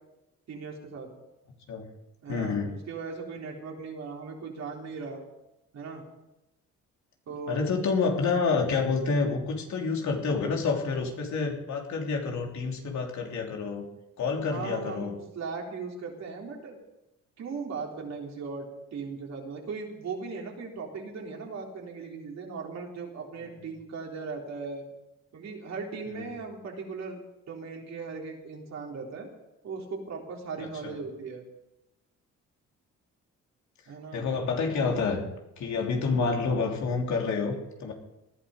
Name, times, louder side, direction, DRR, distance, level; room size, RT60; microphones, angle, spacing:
voice 1, 0.5-1.1 2.2-5.2 5.7-6.0 7.3-7.6 14.4-16.8 17.4-24.9 25.3-27.2 27.5-29.3 29.6-31.4 33.9-34.3, right 4 dB, 60° right, 0 dB, 3.8 m, -38 dB
voice 2, 2.3-2.7 7.5-13.8 14.2-15.2 26.1-26.3 30.8-30.9 34.1-35.2 35.6-37.9, left 4 dB, 70° left, 1 dB, 3.2 m, -28 dB
19.0 x 12.0 x 5.1 m, 0.91 s
cardioid pair, 90°, 30 cm